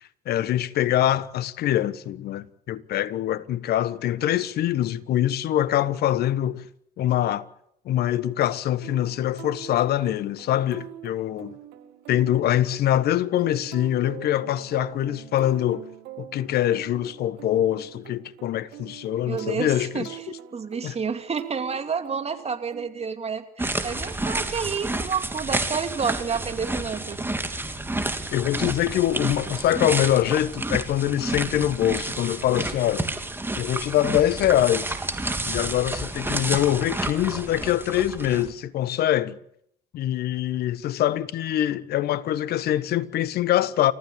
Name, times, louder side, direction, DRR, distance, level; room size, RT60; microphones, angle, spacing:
voice 1, 0.3-6.6 7.0-7.5 7.8-11.5 12.1-15.8 16.2-20.1 20.8-20.9 28.3-33.1 33.6-35.0 35.5-39.4 39.9-43.9, left 12 dB, 60° left, 1.3 m, -24 dB
sound 1, 8.8-22.9, right 13 dB, 70° right, 2.6 m, -44 dB
voice 2, 19.3-20.1 20.5-27.2, right 6 dB, 35° right, 2.8 m, -29 dB
sound 2, 23.6-38.5, right 2 dB, 10° right, 3.1 m, -30 dB
29.0 x 15.0 x 8.6 m
hypercardioid pair, 60°, 19 cm